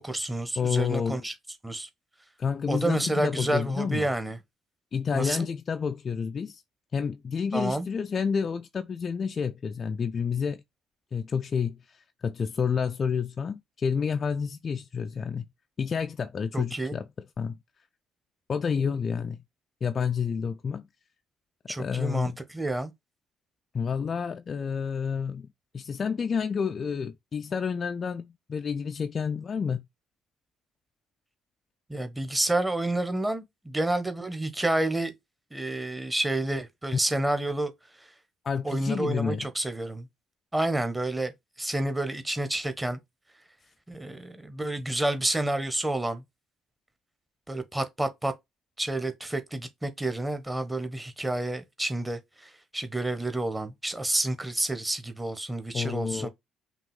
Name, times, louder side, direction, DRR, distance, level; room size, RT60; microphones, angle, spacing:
voice 1, 0.0-1.3 1.6-1.9 2.7-4.4 5.1-5.5 7.5-7.9 16.5-17.0 21.7-22.9 31.9-35.1 35.5-37.7 38.6-40.1 40.5-41.3 41.6-43.0 43.9-46.2 47.5-48.3 48.8-56.3, right 1 dB, 10° right, 1.1 m, -29 dB
voice 2, 0.6-1.2 2.4-4.1 4.9-6.6 6.9-10.6 11.1-15.5 15.8-17.1 17.4-17.6 18.5-19.4 19.8-20.9 21.8-22.4 23.7-25.5 25.7-29.9 38.4-39.5 55.7-56.3, left 6 dB, 40° left, 0.4 m, -29 dB
5.7 x 2.4 x 3.5 m
figure-of-eight pair, 50°, 0 cm